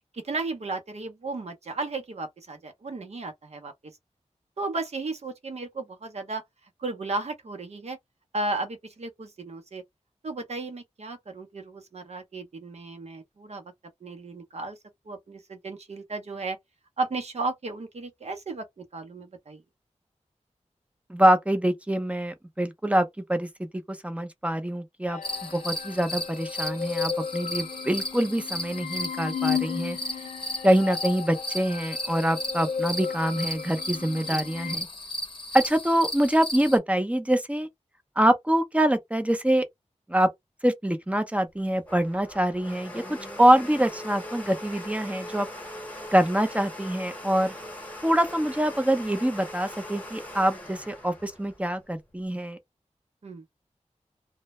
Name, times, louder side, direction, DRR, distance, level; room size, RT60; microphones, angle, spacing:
voice 1, 0.1-3.7 4.6-6.4 6.8-8.0 8.3-9.8 10.2-13.7 14.0-14.8 15.1-16.6 17.0-18.6 18.9-19.6 34.3-34.5 53.2-53.4, right 3 dB, 60° right, 0.6 m, -34 dB
voice 2, 21.1-23.5 23.9-25.2 25.5-30.0 30.6-34.9 35.5-37.7 38.2-39.6 40.1-40.3 40.6-45.5 46.1-47.5 48.0-52.6, right 1 dB, 10° right, 0.5 m, -25 dB
sound 1, 25.1-34.8, left 7 dB, 85° left, 0.5 m, -34 dB
sound 2, 25.2-36.8, left 1 dB, 45° left, 0.7 m, -35 dB
Domestic sounds home sounds, 41.5-52.2, left 1 dB, 10° left, 0.9 m, -41 dB
2.1 x 2.1 x 2.9 m
wide cardioid pair, 80°, 12 cm